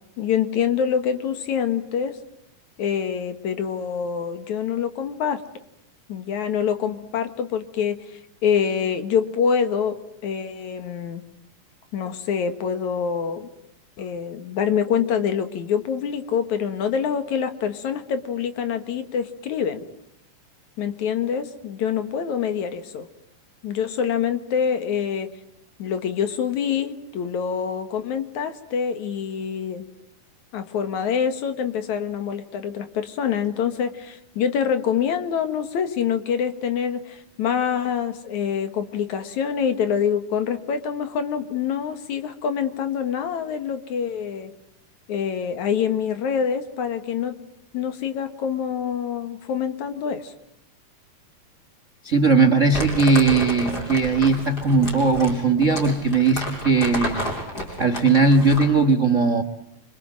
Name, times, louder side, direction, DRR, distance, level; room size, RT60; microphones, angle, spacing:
voice 1, 0.2-2.2 2.8-5.4 6.1-10.0 10.2-11.2 11.9-13.5 14.0-19.8 20.8-23.1 23.6-25.3 25.8-29.9 30.5-44.5 45.1-47.4 47.7-50.3, left 7 dB, 65° left, 9 dB, 2.8 m, -25 dB
voice 2, 52.0-57.2 57.8-59.4, right 3 dB, 90° right, 10 dB, 0.6 m, -18 dB
Crumpling crinkling, 52.7-58.8, equal, 25° left, 6.3 m, -31 dB
27.5 x 26.0 x 7.7 m, 0.78 s
omnidirectional pair, 3.9 m